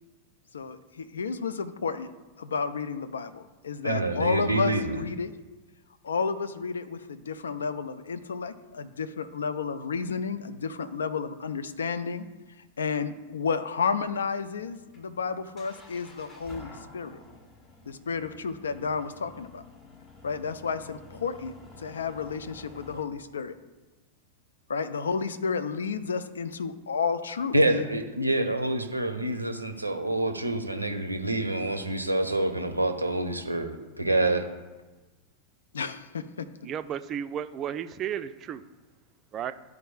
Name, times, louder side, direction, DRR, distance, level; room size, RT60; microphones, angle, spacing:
voice 1, 0.5-2.1 2.4-5.3 6.0-12.2 12.8-17.2 17.9-19.6 20.2-21.5 21.8-23.6 24.7-27.5 35.7-36.2, left 5 dB, 70° left, 11 dB, 0.4 m, -31 dB
voice 2, 3.8-4.9 27.5-34.4, right 1 dB, 85° right, 6 dB, 0.5 m, -27 dB
sound 1, 13.9-23.0, left 2 dB, 30° left, 1.2 m, -50 dB
voice 3, 36.6-38.6 39.3-39.5, right 9 dB, 30° right, 11 dB, 0.4 m, -33 dB
12.0 x 4.7 x 2.4 m, 1.2 s
figure-of-eight pair, 90°, 0 cm